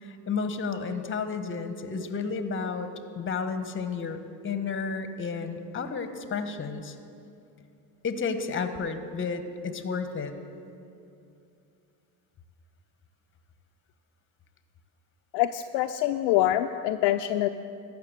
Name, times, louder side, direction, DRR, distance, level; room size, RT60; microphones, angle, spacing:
voice 1, 0.0-2.9 3.2-6.9 8.0-10.3, left 5 dB, 25° left, 9 dB, 1.0 m, -32 dB
voice 2, 15.3-17.5, left 13 dB, 60° left, 6 dB, 0.5 m, -25 dB
13.5 x 6.0 x 7.5 m, 2.6 s
supercardioid pair, 90°, 46 cm